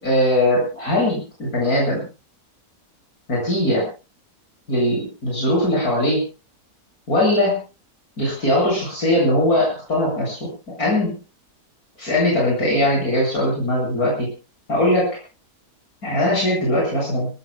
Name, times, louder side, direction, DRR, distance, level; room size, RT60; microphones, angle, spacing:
voice 1, 0.0-2.0 3.3-3.9 4.7-6.2 7.1-7.6 8.2-11.1 12.0-14.3 14.7-15.2 16.0-17.3, left 1 dB, 70° left, -3 dB, 8.2 m, -20 dB
30.0 x 15.5 x 2.2 m, 0.32 s
omnidirectional pair, 1.6 m